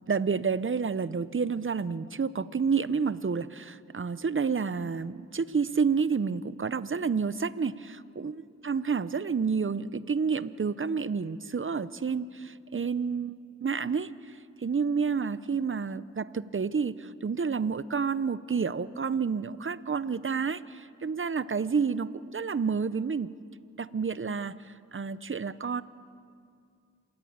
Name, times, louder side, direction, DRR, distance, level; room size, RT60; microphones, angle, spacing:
voice 1, 0.1-23.3 23.8-24.6 24.9-25.8, right 5 dB, 40° right, 16 dB, 0.8 m, -29 dB
27.5 x 14.0 x 8.9 m, 2.3 s
cardioid pair, 45°, 32 cm